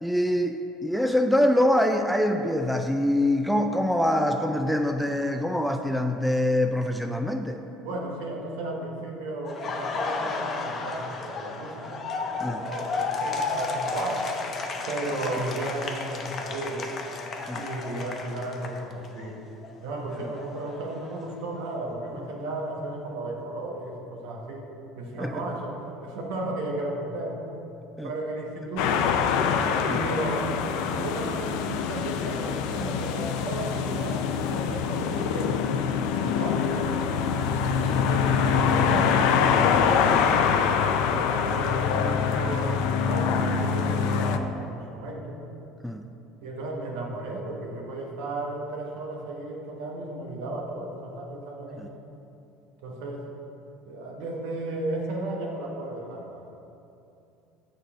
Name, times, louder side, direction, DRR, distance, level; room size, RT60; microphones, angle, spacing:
voice 1, 0.0-7.6 12.4-12.6 17.5-17.6 25.2-25.3 28.0-28.1 29.9-30.0 36.2-36.4 45.8-46.0, left 1 dB, ahead, 4 dB, 0.4 m, -24 dB
voice 2, 7.8-14.3 14.9-16.8 17.5-19.4 19.8-24.7 24.9-27.4 28.0-29.1 29.5-35.6 36.2-37.0 37.6-40.6 41.1-45.4 46.4-51.9 52.8-53.3 53.8-56.4, right 2 dB, 75° right, -1 dB, 1.1 m, -34 dB
Laughter, 9.4-19.3 19.6-21.6, left 4 dB, 40° left, 0.7 m, -33 dB
sound 1, 28.8-44.4, left 6 dB, 70° left, 0.4 m, -24 dB
6.5 x 3.9 x 6.1 m, 2.7 s
hypercardioid pair, 85°, 0 cm